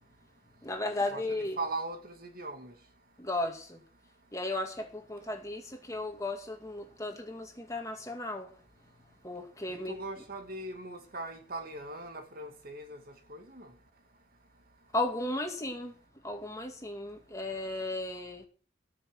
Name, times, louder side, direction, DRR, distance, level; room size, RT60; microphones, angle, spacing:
voice 1, 0.6-1.6 3.2-3.8 4.3-8.5 9.2-10.0 14.9-16.0 16.2-18.4, left 2 dB, 15° left, 2.2 m, -35 dB
voice 2, 1.6-2.7 9.7-13.0 13.3-13.7, right 2 dB, 50° right, 2.2 m, -39 dB
13.0 x 9.2 x 6.3 m
head